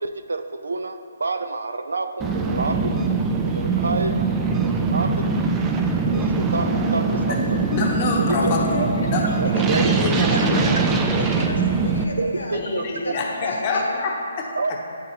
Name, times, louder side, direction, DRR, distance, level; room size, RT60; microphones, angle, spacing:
voice 1, 0.0-3.0 3.4-4.2 4.5-5.3 6.0-7.6 8.3-8.4 8.7-8.9 9.4-9.9 10.3-10.8 12.2-13.2 14.6-14.8, right 3 dB, 90° right, 8 dB, 0.4 m, -28 dB
sound 1, 2.2-12.0, right 4 dB, 15° right, 0.3 m, -22 dB
voice 2, 7.7-9.5 9.9-10.9 12.5-14.5, left 3 dB, 35° left, 0 dB, 0.8 m, -27 dB
voice 3, 8.5-10.6 11.1-14.0, left 2 dB, 90° left, 1 dB, 1.0 m, -33 dB
9.0 x 3.9 x 2.8 m, 2.5 s
hypercardioid pair, 155°, 0 cm